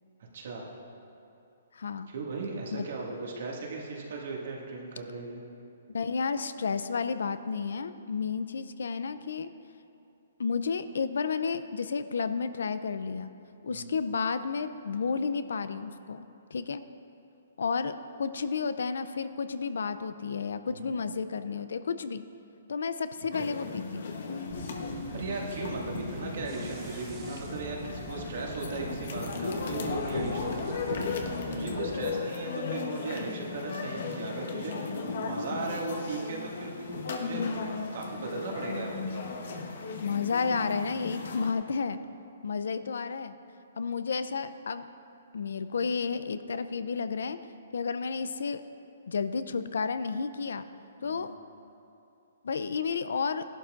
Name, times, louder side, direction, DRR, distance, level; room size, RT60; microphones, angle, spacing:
voice 1, 0.3-0.7 2.1-5.4 13.7-13.9 20.6-20.9 23.3-23.5 24.8-37.6 37.9-39.2 51.0-51.3, right 3 dB, 50° right, -2 dB, 1.9 m, -37 dB
voice 2, 1.7-2.1 2.7-2.9 5.9-9.5 10.4-13.3 13.6-16.2 16.5-16.8 17.6-22.2 22.7-24.2 40.0-42.0 42.4-43.3 43.8-44.9 45.3-47.4 47.7-48.6 49.1-50.7 51.0-51.3 52.4-53.5, left 5 dB, 75° left, 12 dB, 0.5 m, -31 dB
sound 1, 23.3-41.5, left 4 dB, 50° left, 1.0 m, -36 dB
sound 2, 24.5-32.1, right 4 dB, 20° right, 0.6 m, -45 dB
16.5 x 11.5 x 2.5 m, 2.7 s
hypercardioid pair, 180°, 0 cm